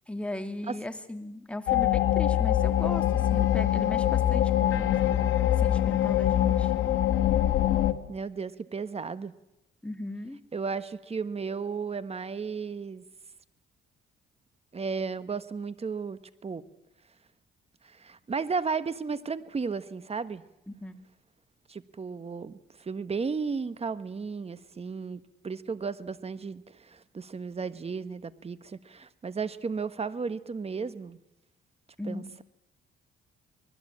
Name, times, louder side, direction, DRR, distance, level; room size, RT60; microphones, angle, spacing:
voice 1, 0.1-4.9 5.5-6.7 9.8-10.4 20.7-21.0 32.0-32.3, left 1 dB, 5° left, 6 dB, 2.5 m, -37 dB
sound 1, 1.7-7.9, left 12 dB, 80° left, 1.7 m, -24 dB
voice 2, 8.1-9.3 10.5-13.0 14.7-16.6 17.8-20.4 21.7-31.2 32.1-32.4, right 5 dB, 30° right, 13 dB, 1.4 m, -34 dB
25.0 x 20.0 x 8.7 m, 0.88 s
cardioid pair, 90°, 20 cm